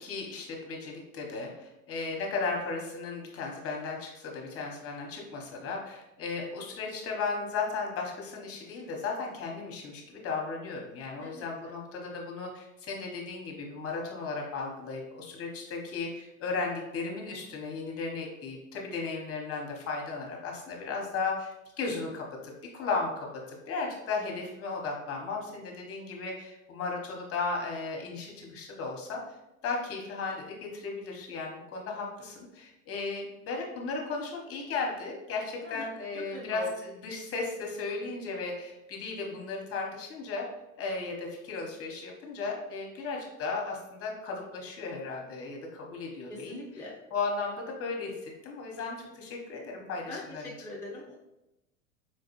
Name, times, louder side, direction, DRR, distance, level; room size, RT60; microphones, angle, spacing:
voice 1, 0.0-21.5 21.8-29.2 29.6-36.6 37.0-40.5 40.8-46.6 47.1-50.5, left 4 dB, 35° left, 0 dB, 1.0 m, -35 dB
voice 2, 11.2-11.7 23.7-23.8 35.6-35.8 36.1-36.7 46.3-46.9 50.1-51.2, left 2 dB, 5° left, -5 dB, 0.5 m, -41 dB
4.5 x 2.2 x 3.0 m, 0.93 s
hypercardioid pair, 85°, 42 cm